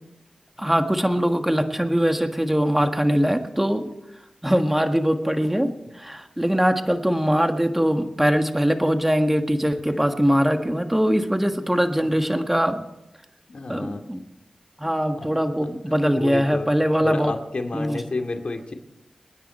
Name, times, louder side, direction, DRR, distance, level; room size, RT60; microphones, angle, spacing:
voice 1, 0.6-3.9 4.4-12.8 13.7-14.2 14.8-17.3 17.7-18.0, equal, 10° right, 6 dB, 1.6 m, -22 dB
voice 2, 13.5-14.0 14.8-15.3 16.0-16.7 17.0-18.7, left 3 dB, 60° left, 4 dB, 2.3 m, -30 dB
27.5 x 9.8 x 4.4 m, 0.92 s
cardioid pair, 50°, 2 cm